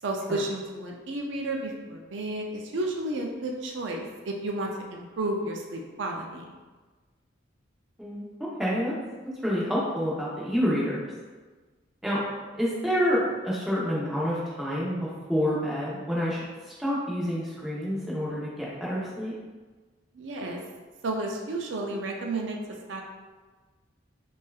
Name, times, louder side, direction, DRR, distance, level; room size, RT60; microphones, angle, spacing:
voice 1, 0.0-6.5 20.1-20.6 21.0-22.6 22.9-23.0, right 2 dB, 75° right, 0 dB, 0.5 m, -32 dB
voice 2, 8.0-8.9 9.4-11.1 12.0-12.2 12.6-16.5 16.8-19.3, equal, ahead, -8 dB, 0.8 m, -28 dB
5.4 x 2.4 x 2.4 m, 1.3 s
head